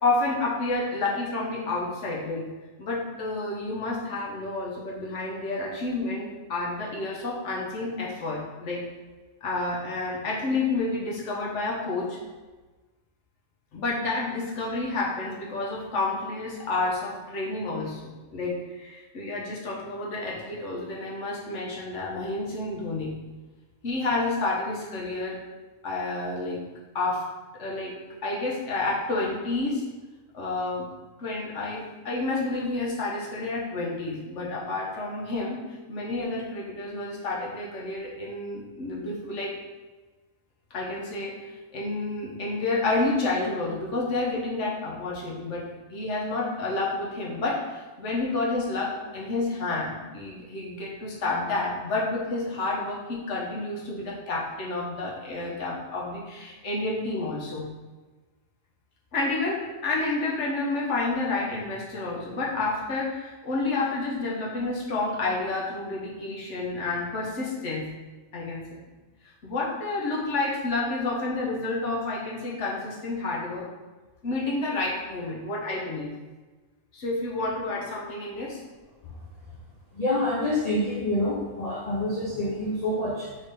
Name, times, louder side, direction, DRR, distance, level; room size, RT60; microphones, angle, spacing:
voice 1, 0.0-2.4 2.8-8.8 9.4-12.2 13.7-23.1 23.8-25.4 25.8-26.6 26.9-27.2 27.5-27.9 28.2-29.8 30.3-30.9 31.2-35.6 35.9-39.6 40.7-41.3 41.7-57.7 59.1-67.9 68.3-68.8 69.4-73.7 74.2-76.1 76.9-78.6, left 2 dB, 55° left, -3 dB, 1.2 m, -29 dB
voice 2, 79.9-83.4, left 1 dB, 80° left, -4 dB, 0.3 m, -27 dB
4.0 x 3.5 x 3.4 m, 1.3 s
omnidirectional pair, 1.6 m